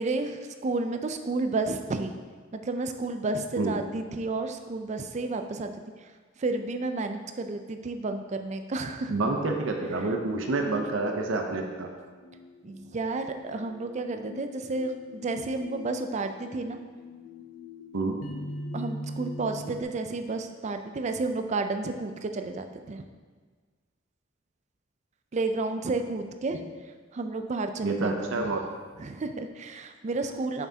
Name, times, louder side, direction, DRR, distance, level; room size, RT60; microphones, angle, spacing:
voice 1, 0.0-2.1 2.7-5.7 6.4-9.1 12.6-16.8 18.7-23.0 25.3-26.6 27.1-28.4 29.0-30.7, right 3 dB, 35° right, 7 dB, 0.4 m, -31 dB
voice 2, 9.1-11.9 17.9-18.2 27.8-28.6, right 3 dB, 80° right, 2 dB, 0.7 m, -28 dB
sound 1, 12.2-19.8, left 1 dB, 85° left, 0.6 m, -42 dB
7.2 x 5.8 x 2.8 m, 1.5 s
head